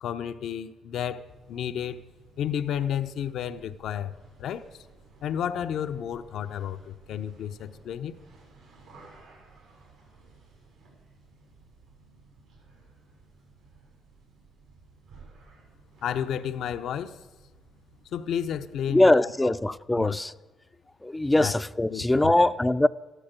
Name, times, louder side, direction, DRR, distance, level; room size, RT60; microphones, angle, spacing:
voice 1, 0.0-2.0 2.4-4.1 4.4-4.8 5.2-8.2 16.0-17.2 18.1-19.1 19.4-19.5 20.0-20.2 21.4-21.6 21.9-22.5, left 9 dB, 75° left, 0.7 m, -32 dB
sound 1, 1.1-18.8, right 3 dB, 90° right, 7.4 m, -56 dB
voice 2, 18.9-20.3 21.0-22.9, left 1 dB, 10° left, 0.5 m, -22 dB
14.0 x 12.5 x 8.2 m
cardioid pair, 90°, 0 cm